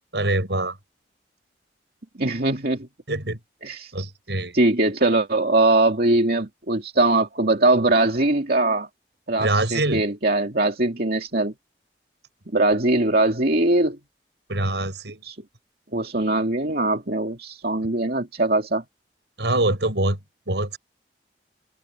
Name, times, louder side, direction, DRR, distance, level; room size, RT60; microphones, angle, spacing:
voice 1, 0.1-0.8 3.1-3.4 3.9-4.6 9.4-10.0 14.5-15.2 19.4-20.2 20.5-20.8, right 2 dB, 80° right, 6.6 m, -24 dB
voice 2, 2.2-2.9 3.6-3.9 4.5-8.9 9.3-11.5 12.5-14.0 15.2-15.4 15.9-18.8, right 2 dB, 60° right, 2.5 m, -21 dB
head